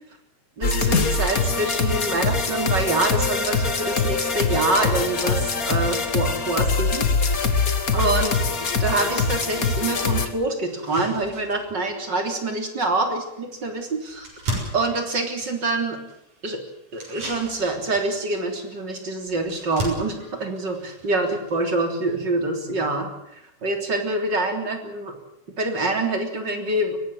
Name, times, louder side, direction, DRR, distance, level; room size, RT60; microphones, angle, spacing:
sound 1, 0.6-10.3, left 4 dB, 35° left, 1.8 m, -23 dB
voice 1, 0.6-7.1 7.9-8.4 8.8-14.3 14.7-16.0 16.4-16.6 16.9-25.1 25.6-27.0, right 2 dB, 35° right, 4 dB, 3.9 m, -26 dB
sound 2, 10.6-22.3, right 1 dB, 75° right, 8.2 m, -38 dB
22.5 x 18.5 x 7.9 m, 0.84 s
omnidirectional pair, 3.5 m